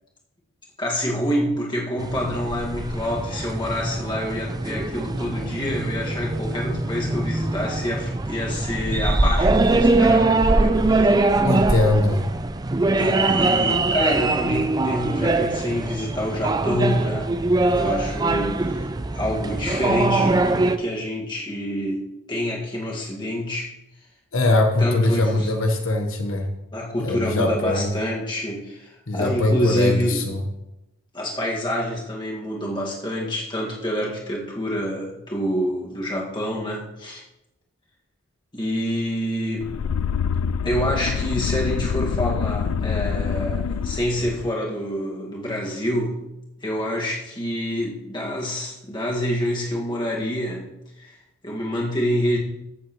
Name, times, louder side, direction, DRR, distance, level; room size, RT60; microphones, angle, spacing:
voice 1, 0.8-11.1 13.0-17.3 17.7-18.9 19.1-23.7 24.8-25.5 26.7-30.3 31.1-37.2 38.5-39.7 40.6-46.2 46.6-50.7 51.0-51.2 51.4-52.4, equal, 20° left, -3 dB, 1.8 m, -27 dB
sound 1, 2.0-20.8, right 2 dB, 20° right, 0.4 m, -22 dB
voice 2, 11.4-12.3 24.3-26.5 27.0-28.0 29.1-30.4, left 2 dB, 70° left, 4 dB, 1.1 m, -21 dB
sound 2, 39.6-44.5, left 6 dB, 90° left, 0.4 m, -25 dB
14.5 x 7.8 x 3.1 m, 0.90 s
head